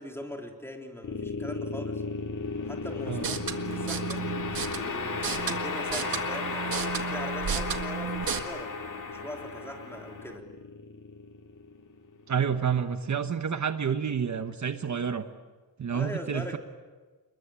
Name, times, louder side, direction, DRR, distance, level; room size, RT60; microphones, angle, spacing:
voice 1, 0.0-2.0 2.6-4.2 4.7-8.7 9.1-10.5 15.9-16.6, left 1 dB, 5° left, 2 dB, 3.6 m, -41 dB
sound 1, 1.0-12.2, left 4 dB, 60° left, 2.3 m, -34 dB
sound 2, 3.1-8.4, right 7 dB, 75° right, 1.9 m, -34 dB
voice 2, 12.3-15.2 15.8-16.6, right 7 dB, 55° right, 8 dB, 1.2 m, -29 dB
29.5 x 21.5 x 8.9 m, 1.3 s
wide cardioid pair, 165°, 35 cm